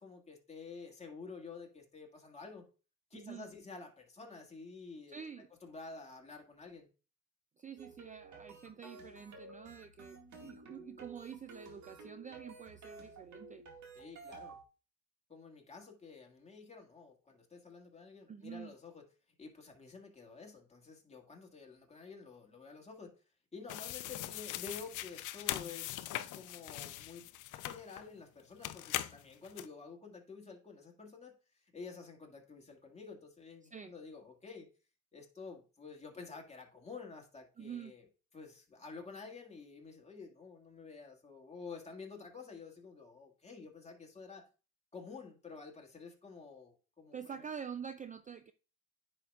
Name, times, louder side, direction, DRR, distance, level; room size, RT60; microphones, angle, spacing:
voice 1, 0.0-2.6 3.1-6.9 13.9-14.6 15.3-19.0 19.4-23.1 23.5-27.3 27.6-34.7 35.1-38.1 38.3-44.5 44.9-47.5, left 4 dB, 20° left, 2.0 m, -50 dB
voice 2, 3.1-3.5 5.1-5.5 7.6-13.6 18.3-18.8 33.7-33.9 37.6-38.0 47.1-48.5, right 7 dB, 25° right, 0.4 m, -47 dB
sound 1, 7.8-14.6, right 3 dB, 65° right, 2.0 m, -53 dB
sound 2, 23.7-28.1 28.6-29.7, left 14 dB, 90° left, 0.5 m, -41 dB
9.7 x 5.5 x 2.4 m
cardioid pair, 90°, 30 cm